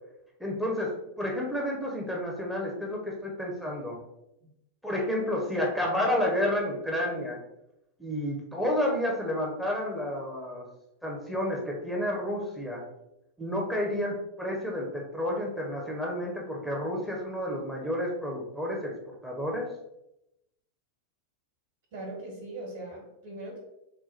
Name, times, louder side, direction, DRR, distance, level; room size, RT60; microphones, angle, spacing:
voice 1, 0.4-4.0 4.8-7.4 8.0-10.6 11.0-12.8 13.4-18.9 19.2-19.7, left 1 dB, ahead, -2 dB, 0.8 m, -30 dB
voice 2, 21.9-23.6, right 2 dB, 45° right, -3 dB, 1.3 m, -40 dB
4.3 x 2.2 x 4.0 m, 0.87 s
figure-of-eight pair, 90°, 0 cm